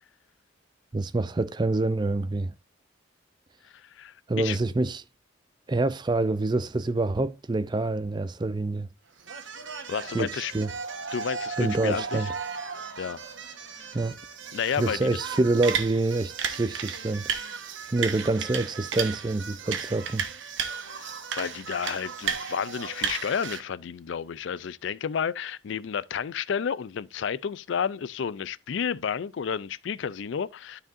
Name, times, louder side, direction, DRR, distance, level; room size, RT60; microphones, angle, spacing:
voice 1, 0.9-2.5 4.3-5.0 5.7-8.9 10.1-10.7 11.6-12.3 13.9-14.2 14.8-17.3 17.9-20.3, right 2 dB, 20° right, 0.4 m, -26 dB
voice 2, 3.9-4.6 9.9-10.5 11.1-12.2 13.0-13.2 13.7-13.8 14.5-15.1 21.0-30.8, left 7 dB, 65° left, 0.4 m, -31 dB
sound 1, 9.2-23.6, right 6 dB, 65° right, 1.1 m, -34 dB
12.5 x 4.9 x 2.5 m
head